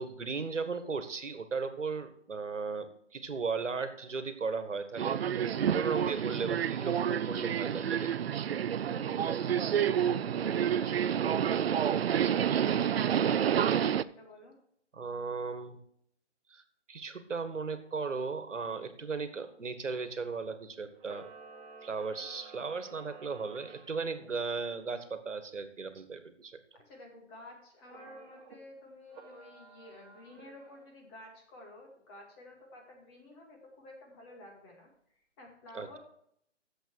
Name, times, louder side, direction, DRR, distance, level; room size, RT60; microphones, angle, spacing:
voice 1, 0.0-8.3 14.9-15.8 16.5-16.6 16.9-21.3 21.8-26.6 35.8-36.0, right 4 dB, 90° right, 10 dB, 1.6 m, -36 dB
Subway metro underground, 5.0-14.0, right 9 dB, 60° right, 0.5 m, -29 dB
voice 2, 8.9-14.5 26.7-36.0, left 2 dB, 20° left, 0 dB, 2.3 m, -52 dB
Camera, 20.9-24.3 27.8-28.6 29.1-30.9, right 5 dB, 35° right, 1.8 m, -52 dB
11.0 x 7.7 x 4.6 m, 0.70 s
hypercardioid pair, 155°, 36 cm